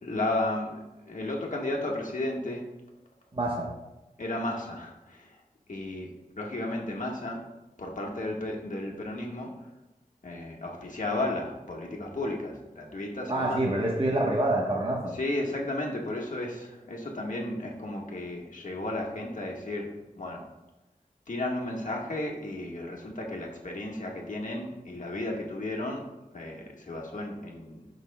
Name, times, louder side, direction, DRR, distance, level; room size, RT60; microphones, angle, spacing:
voice 1, 0.0-2.7 4.2-5.4 5.7-6.1 6.4-7.4 7.8-9.5 10.2-13.6 15.1-20.5 21.3-26.0 26.3-27.8, left 1 dB, 60° left, -1 dB, 1.4 m, -33 dB
voice 2, 3.3-3.7 13.3-15.1, right 1 dB, 40° right, -2 dB, 1.1 m, -26 dB
11.5 x 5.4 x 2.2 m, 1.0 s
cardioid pair, 45°, 14 cm